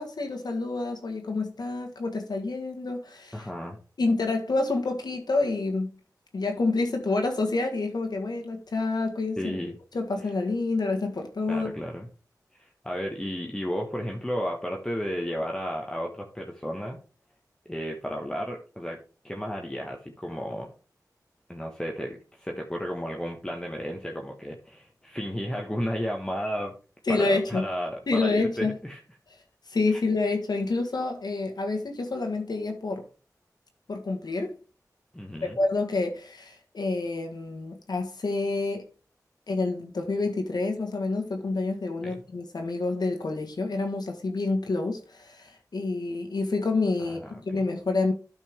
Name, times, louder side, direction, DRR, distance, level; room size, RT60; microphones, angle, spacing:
voice 1, 0.0-3.5 4.0-5.9 6.3-9.6 9.9-11.7 27.1-27.6 28.1-28.7 29.7-33.0 33.9-34.6 35.6-38.9 39.5-48.1, left 3 dB, 80° left, 1.6 m, -28 dB
voice 2, 3.3-3.8 9.4-9.7 11.5-12.1 12.5-17.0 17.6-19.0 19.2-20.7 21.5-26.7 27.1-29.0 29.9-30.0 35.1-35.6 42.0-42.1 47.0-47.3 47.5-47.6, equal, 10° left, 1.3 m, -33 dB
12.5 x 5.4 x 3.6 m
wide cardioid pair, 75°, 7 cm